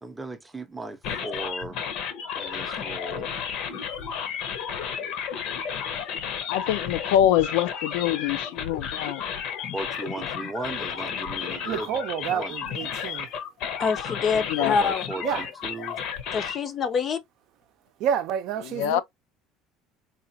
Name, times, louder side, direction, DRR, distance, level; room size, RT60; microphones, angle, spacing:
voice 1, 0.0-1.9 2.3-3.3 9.7-12.0 12.3-12.6 14.6-16.0, right 2 dB, 10° right, 0.6 m, -37 dB
sound 1, 1.0-16.6, left 7 dB, 60° left, 0.8 m, -33 dB
voice 2, 6.5-9.2 11.5-11.6 14.3-14.8 18.6-19.0, left 11 dB, 90° left, 0.4 m, -25 dB
voice 3, 11.6-13.3 15.2-15.5 18.0-19.0, right 9 dB, 55° right, 0.6 m, -29 dB
voice 4, 13.8-15.0 16.3-17.2, left 5 dB, 30° left, 0.5 m, -25 dB
4.0 x 2.4 x 2.7 m
cardioid pair, 155°, 0 cm